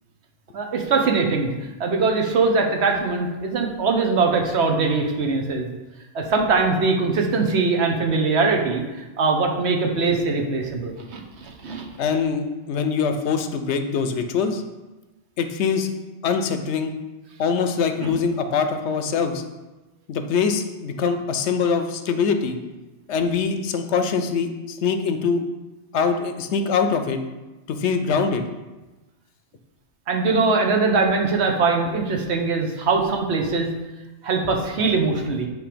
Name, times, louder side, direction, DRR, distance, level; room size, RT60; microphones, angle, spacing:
voice 1, 0.5-5.7 6.1-11.9 18.0-18.2 30.1-33.7 34.2-35.5, right 4 dB, 65° right, 2 dB, 1.1 m, -22 dB
voice 2, 12.0-14.6 15.4-15.9 16.2-16.9 17.4-19.4 20.1-22.6 23.1-25.4 25.9-27.2 27.7-28.5, left 5 dB, 70° left, 7 dB, 0.9 m, -23 dB
8.2 x 3.1 x 5.1 m, 1.1 s
omnidirectional pair, 1.2 m